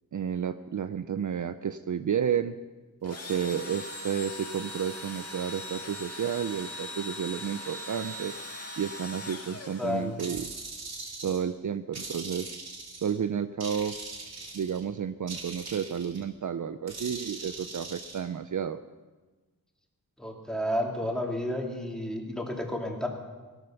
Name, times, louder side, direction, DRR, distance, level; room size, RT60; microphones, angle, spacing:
voice 1, 0.1-2.5 3.0-8.4 8.8-10.5 11.2-12.6 13.0-14.0 14.5-18.8, right 8 dB, 55° right, 11 dB, 0.5 m, -31 dB
Engine / Drill, 3.0-10.4, left 1 dB, 40° left, 1.9 m, -40 dB
voice 2, 9.8-10.2 20.2-23.1, left 1 dB, ahead, 0 dB, 2.5 m, -31 dB
sound 1, 10.2-11.5 11.9-13.2 13.6-14.8 15.3-16.2 16.9-18.2, right 3 dB, 80° right, 2.5 m, -41 dB
17.5 x 12.0 x 5.8 m, 1.3 s
wide cardioid pair, 110°, 37 cm